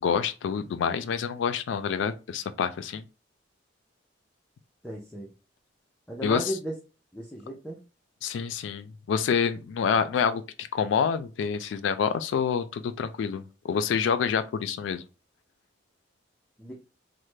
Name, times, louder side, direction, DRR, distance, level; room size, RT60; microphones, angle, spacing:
voice 1, 0.0-3.0 6.2-6.4 8.2-15.0, left 6 dB, 80° left, 0.3 m, -27 dB
voice 2, 4.8-5.3 6.1-6.7 7.1-7.8 16.6-16.7, equal, 5° left, 0.4 m, -35 dB
3.1 x 2.1 x 3.2 m
head